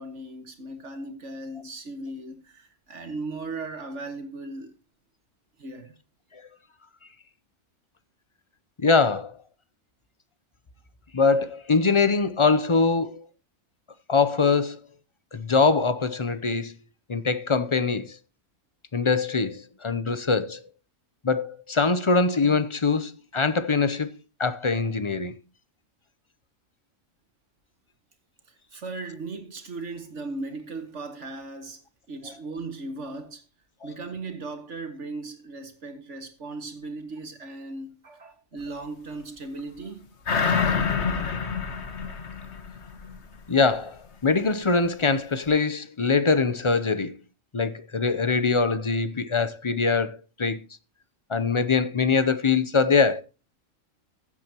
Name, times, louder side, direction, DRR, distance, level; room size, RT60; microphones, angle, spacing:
voice 1, 0.0-4.7 5.6-5.9 28.5-31.8 32.1-33.4 33.8-40.1, right 3 dB, 65° right, 2.1 m, -37 dB
voice 2, 8.8-9.3 11.1-13.2 14.1-14.8 15.3-16.7 17.1-18.2 18.9-20.6 21.2-24.1 24.4-25.3 43.5-47.1 47.5-50.6 51.3-53.2, left 4 dB, 35° left, 0.5 m, -23 dB
sound 1, 40.3-43.2 43.5-43.6, left 5 dB, 60° left, 1.5 m, -27 dB
15.0 x 8.4 x 2.9 m
omnidirectional pair, 1.4 m